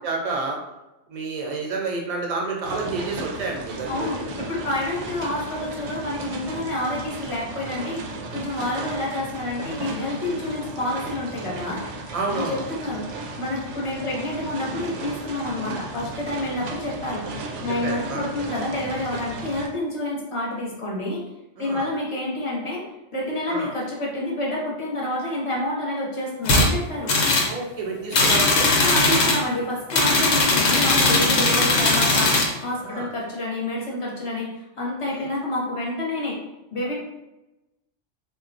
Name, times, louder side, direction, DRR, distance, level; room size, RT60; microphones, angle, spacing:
voice 1, 0.0-0.6 1.1-4.1 12.1-12.7 17.8-18.3 21.6-21.9 23.5-23.7 27.5-28.7 32.8-33.1 35.0-35.3, right 3 dB, 40° right, -1 dB, 0.6 m, -29 dB
sound 1, 2.6-19.7, right 2 dB, 75° right, 0.8 m, -35 dB
voice 2, 3.9-11.8 12.3-17.2 17.6-21.3 21.6-22.8 23.1-27.1 28.8-36.4 36.7-36.9, left 1 dB, 30° left, -4 dB, 0.9 m, -28 dB
sound 2, 26.4-26.7 27.1-27.5 28.1-29.4 29.9-32.5, left 2 dB, 70° left, 0.9 m, -19 dB
4.0 x 2.2 x 2.5 m, 0.96 s
omnidirectional pair, 1.3 m